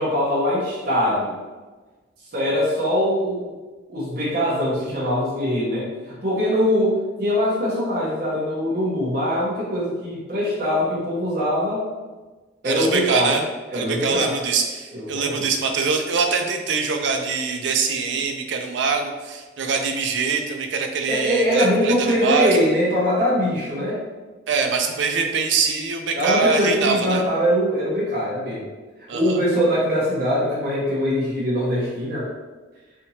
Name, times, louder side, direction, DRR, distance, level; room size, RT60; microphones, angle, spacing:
voice 1, 0.0-1.4 2.3-3.5 3.9-11.8 12.6-13.4 13.7-14.3 14.9-15.5 21.1-24.0 26.1-28.7 29.1-32.3, equal, 55° right, -8 dB, 0.9 m, -22 dB
voice 2, 12.6-13.4 13.7-21.9 22.2-22.6 24.5-27.2 29.1-29.4, right 5 dB, 70° right, 4 dB, 0.4 m, -23 dB
3.4 x 2.8 x 2.8 m, 1.3 s
head